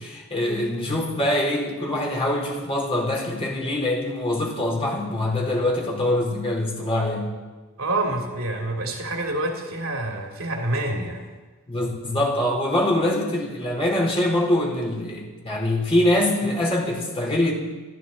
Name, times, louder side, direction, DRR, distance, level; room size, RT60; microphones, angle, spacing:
voice 1, 0.0-7.3 11.7-17.5, left 1 dB, 25° left, -2 dB, 4.1 m, -24 dB
voice 2, 7.8-11.3, right 2 dB, 70° right, 1 dB, 2.9 m, -27 dB
21.5 x 14.5 x 4.2 m, 1.3 s
head